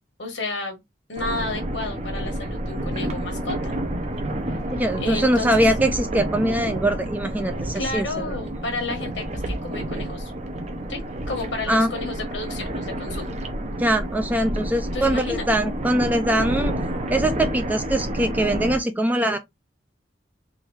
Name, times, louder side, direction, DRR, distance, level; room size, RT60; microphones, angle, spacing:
voice 1, 0.2-0.8 1.1-3.7 4.7-5.6 7.7-10.3 10.9-11.0 11.3-13.3 14.9-15.5, left 2 dB, 85° left, 1.3 m, -31 dB
sound 1, 1.2-18.8, right 1 dB, 40° right, 0.8 m, -29 dB
voice 2, 4.7-8.4 11.7-11.9 13.8-16.8 17.1-19.4, right 1 dB, 10° right, 0.4 m, -22 dB
3.7 x 2.6 x 4.6 m
head